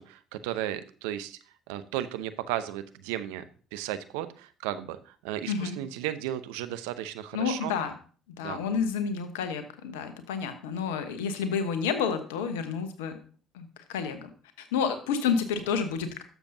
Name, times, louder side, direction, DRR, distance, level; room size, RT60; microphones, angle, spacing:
voice 1, 0.0-1.4 1.7-3.4 3.7-7.8 8.4-8.6, right 12 dB, 75° right, 12 dB, 0.6 m, -34 dB
voice 2, 5.5-5.8 7.3-7.9 8.3-13.2 13.5-14.3 14.6-16.2, left 6 dB, 80° left, 9 dB, 1.0 m, -30 dB
12.0 x 7.0 x 2.7 m, 0.41 s
hypercardioid pair, 55°, 0 cm